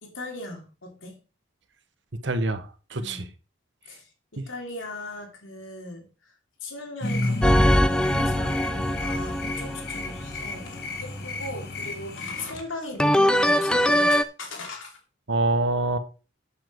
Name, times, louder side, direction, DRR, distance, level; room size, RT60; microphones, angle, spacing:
voice 1, 0.0-1.2 2.9-3.3 3.9-15.0, left 2 dB, 80° left, 2 dB, 2.8 m, -39 dB
voice 2, 2.2-3.3 4.4-4.5 15.3-16.0, right 2 dB, 65° right, 10 dB, 1.2 m, -25 dB
sound 1, 7.0-12.5, left 2 dB, 50° left, 1.7 m, -32 dB
sound 2, 7.4-10.5 13.0-14.2, equal, 5° left, 0.4 m, -22 dB
8.6 x 7.3 x 4.6 m, 0.34 s
head